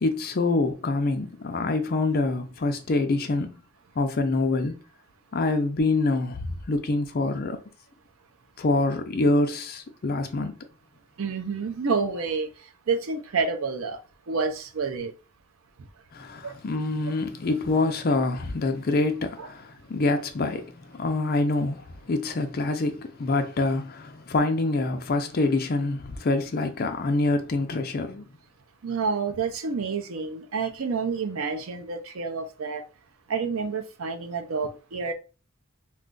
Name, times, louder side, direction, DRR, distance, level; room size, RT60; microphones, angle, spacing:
voice 1, 0.0-3.6 4.0-4.8 5.3-7.6 8.6-10.6 16.1-28.2, left 2 dB, 45° left, 0.5 m, -26 dB
voice 2, 11.2-12.5 12.9-14.0 14.3-15.1 16.4-16.6 19.4-19.5 28.8-32.8 33.3-35.1, right 4 dB, 70° right, 0.5 m, -29 dB
2.4 x 2.3 x 3.7 m
head